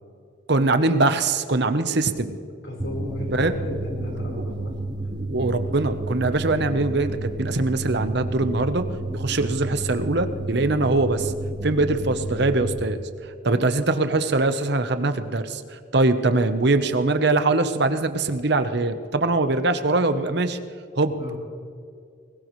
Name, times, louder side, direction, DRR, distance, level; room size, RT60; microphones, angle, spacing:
voice 1, 0.5-2.4 3.3-3.5 4.5-4.6 5.1-8.8 9.1-11.3 11.6-13.0 13.4-20.6 21.0-21.1, right 2 dB, 60° right, 10 dB, 0.9 m, -22 dB
voice 2, 2.6-4.7 21.2-21.4, left 1 dB, 75° left, -1 dB, 4.3 m, -34 dB
sound 1, 2.8-12.8, right 2 dB, 20° right, 0.6 m, -31 dB
20.5 x 18.5 x 3.2 m, 2.4 s
head